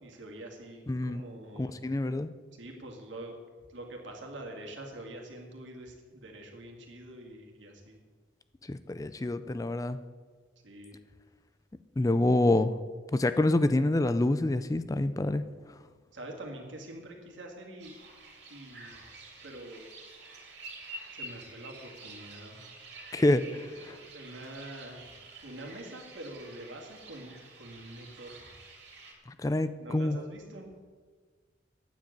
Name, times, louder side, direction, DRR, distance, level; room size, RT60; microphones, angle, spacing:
voice 1, 0.0-1.8 2.5-3.4 3.7-8.0 10.6-11.0 16.1-18.0 18.5-19.0 19.4-19.8 21.1-22.6 23.9-25.0 25.4-28.3 29.8-30.7, right 1 dB, 80° right, 1 dB, 2.4 m, -45 dB
voice 2, 0.9-1.2 1.6-2.3 8.7-10.0 12.0-12.8 13.1-15.4 23.1-24.0 29.4-30.2, left 2 dB, 20° left, 12 dB, 0.4 m, -27 dB
sound 1, 17.8-29.1, right 3 dB, 65° right, 3.0 m, -49 dB
9.3 x 7.6 x 8.6 m, 1.5 s
head